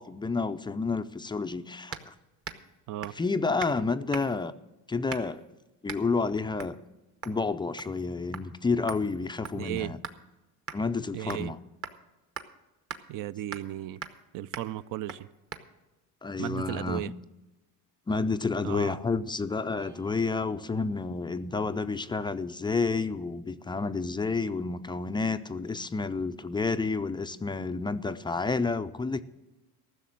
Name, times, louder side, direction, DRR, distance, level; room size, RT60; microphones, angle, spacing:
voice 1, 0.0-2.1 3.1-4.5 4.9-5.4 5.8-6.8 7.2-10.0 10.7-11.6 16.2-17.1 18.1-29.2, left 4 dB, 15° left, 0.3 m, -30 dB
sound 1, 1.9-2.1 2.4-2.7 3.0-3.3 3.6-3.8 4.1-4.5 5.1-5.4 5.9-6.1 6.6-6.8 7.2-7.4 7.8-8.1 8.3-8.5 8.9-10.2 10.7-10.8 11.3-11.5 11.8-12.0 12.4-12.5 12.9-13.0 13.5-13.7 14.0-14.2 14.5-14.7 15.1-15.2 15.5-15.6, right 6 dB, 35° right, 1.0 m, -40 dB
voice 2, 9.6-9.9 11.1-11.5 13.1-14.0 14.3-15.3 16.4-17.1 18.6-19.0, right 14 dB, 55° right, 0.5 m, -35 dB
Guitar, 19.8-26.2, right 4 dB, 75° right, 2.5 m, -59 dB
14.5 x 6.6 x 7.5 m
cardioid pair, 110°, 39 cm